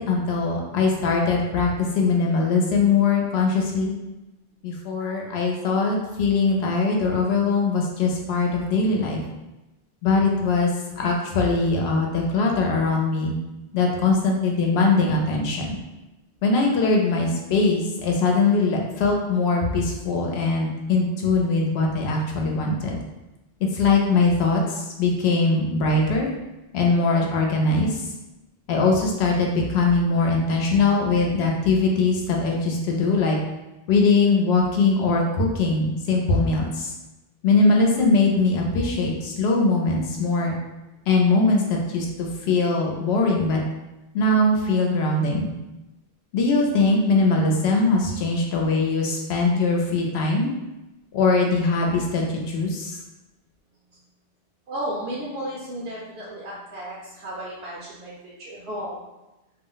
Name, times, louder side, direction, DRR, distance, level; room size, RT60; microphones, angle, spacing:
voice 1, 0.0-3.9 4.6-9.2 10.0-10.7 11.0-13.3 13.7-15.8 16.4-23.0 23.7-26.3 26.7-28.0 28.7-33.4 33.9-36.9 37.4-40.5 41.1-43.6 44.1-45.5 46.3-50.5 51.1-53.0, left 3 dB, 80° left, 0 dB, 0.8 m, -21 dB
voice 2, 54.7-59.0, equal, 75° right, -5 dB, 0.8 m, -33 dB
2.4 x 2.0 x 3.8 m, 1.0 s
omnidirectional pair, 1.1 m